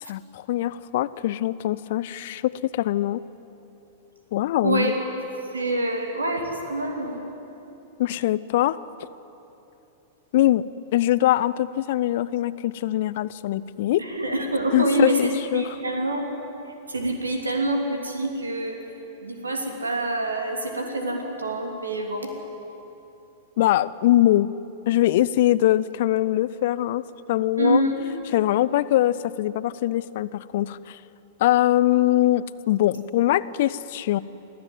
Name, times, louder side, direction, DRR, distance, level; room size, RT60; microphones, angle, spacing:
voice 1, 0.0-3.2 4.3-4.9 8.0-8.8 10.3-10.7 10.9-14.1 14.7-15.8 23.6-24.5 24.9-27.8 28.3-31.0 31.4-34.2, left 14 dB, 55° left, 18 dB, 0.5 m, -22 dB
voice 2, 4.6-5.0 5.5-7.2 14.0-16.2 16.9-18.8 19.2-22.3 27.6-28.1, right 1 dB, 80° right, 3 dB, 2.9 m, -26 dB
23.5 x 15.0 x 9.3 m, 2.9 s
figure-of-eight pair, 95°, 0 cm